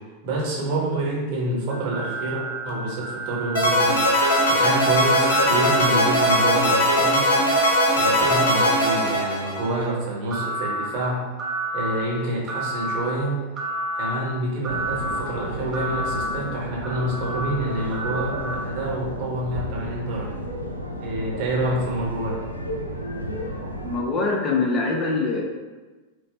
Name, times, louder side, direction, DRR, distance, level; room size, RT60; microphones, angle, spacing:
voice 1, 0.2-3.9 4.5-7.3 7.9-11.2 11.7-13.4 14.0-20.3 21.0-22.4, right 1 dB, 45° right, -4 dB, 0.9 m, -27 dB
sound 1, 1.7-7.1 10.3-10.9 11.4-11.9 12.5-13.0 13.6-14.1 14.6-15.2 15.7-16.3 16.8-18.6, right 2 dB, 20° right, 0.5 m, -31 dB
sound 2, 3.5-9.8, equal, 65° left, 0.8 m, -20 dB
sound 3, 14.6-24.0, equal, 90° right, 0.3 m, -33 dB
voice 2, 23.8-25.4, left 3 dB, 25° left, -1 dB, 0.5 m, -23 dB
4.9 x 2.0 x 2.2 m, 1.3 s
figure-of-eight pair, 90°, 0 cm